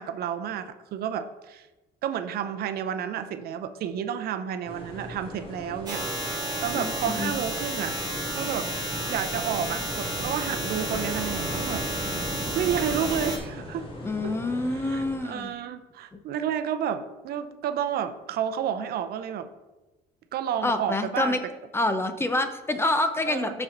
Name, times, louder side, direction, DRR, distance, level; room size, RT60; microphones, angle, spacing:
voice 1, 0.0-1.7 2.0-7.9 8.3-8.7 9.1-12.3 12.6-13.9 14.2-14.3 14.7-19.5 20.3-21.4 23.3-23.5, right 9 dB, 65° right, 10 dB, 0.6 m, -31 dB
sound 1, 4.6-15.2, left 1 dB, 35° left, 2.0 m, -39 dB
sound 2, 5.9-13.4, right 1 dB, 25° right, 1.8 m, -31 dB
voice 2, 6.7-7.3 14.0-15.5 20.6-21.4 21.7-23.6, left 2 dB, 15° left, 8 dB, 0.7 m, -27 dB
12.5 x 4.4 x 3.9 m, 1.1 s
cardioid pair, 110°, 17 cm